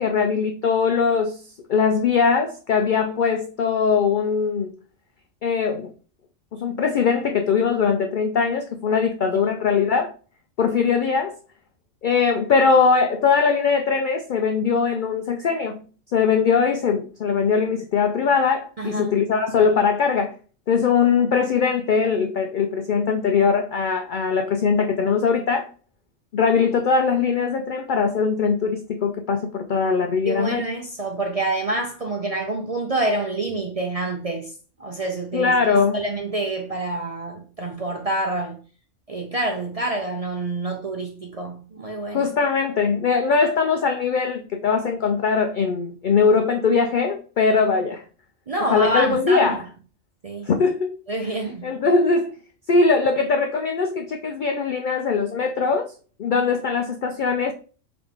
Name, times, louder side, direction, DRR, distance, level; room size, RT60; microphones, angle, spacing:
voice 1, 0.0-1.4 1.7-4.7 5.4-5.9 6.5-10.1 10.6-11.4 12.0-15.8 16.1-20.3 20.7-25.7 26.3-30.6 35.3-36.0 42.1-48.0 48.7-49.6 50.5-51.0 51.6-52.3 52.7-55.9 56.2-57.5, left 5 dB, 70° left, 0.4 m, -21 dB
voice 2, 18.8-19.2 30.3-34.5 34.8-35.5 35.9-38.6 39.1-42.3 48.5-49.6 50.2-50.5 51.1-51.7, right 2 dB, 45° right, 0.5 m, -27 dB
5.0 x 3.0 x 3.5 m
omnidirectional pair, 1.4 m